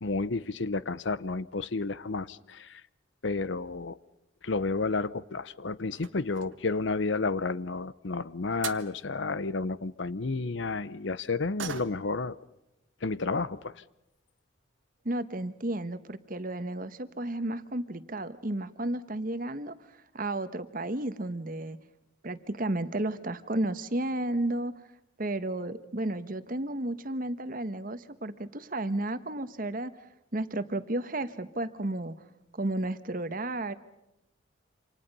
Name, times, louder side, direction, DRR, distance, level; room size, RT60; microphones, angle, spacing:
voice 1, 0.0-2.8 3.2-4.0 4.4-12.3 13.0-13.7, left 3 dB, 70° left, 17 dB, 0.8 m, -31 dB
sound 1, 5.0-5.3 5.9-6.7 8.2-8.3 8.6-8.9 11.6-12.2 12.6-12.7 13.1-13.3 14.0-14.1 14.5-14.6 15.0-15.3 15.6-15.7 16.0-16.1, right 7 dB, 80° right, 1.4 m, -41 dB
voice 2, 15.0-19.8 20.1-21.8 22.2-24.7 25.2-29.9 30.3-32.1 32.5-33.7, right 1 dB, 45° right, 12 dB, 1.2 m, -32 dB
28.5 x 26.5 x 5.5 m, 0.90 s
head